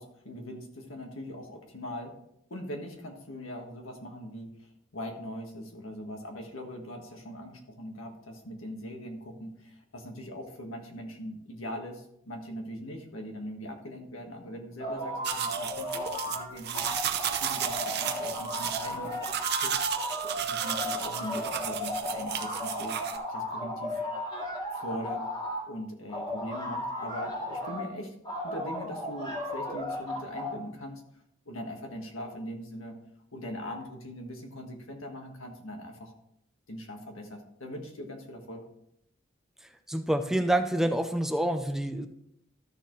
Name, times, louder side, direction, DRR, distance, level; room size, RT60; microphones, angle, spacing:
voice 1, 0.0-2.1 2.5-19.2 19.5-19.8 20.4-23.0 23.3-24.0 24.7-25.3 25.7-28.1 28.4-31.0 31.4-33.0 33.3-36.1 36.7-38.7, equal, 80° left, 3 dB, 1.6 m, -41 dB
sound 1, 14.8-16.4 16.7-25.6 26.1-27.8 28.2-30.6, equal, 25° left, 2.2 m, -35 dB
sound 2, 15.2-23.2, right 9 dB, 55° right, 0.7 m, -33 dB
voice 2, 39.9-42.1, right 1 dB, ahead, 8 dB, 0.4 m, -27 dB
13.0 x 6.8 x 3.1 m, 0.76 s
head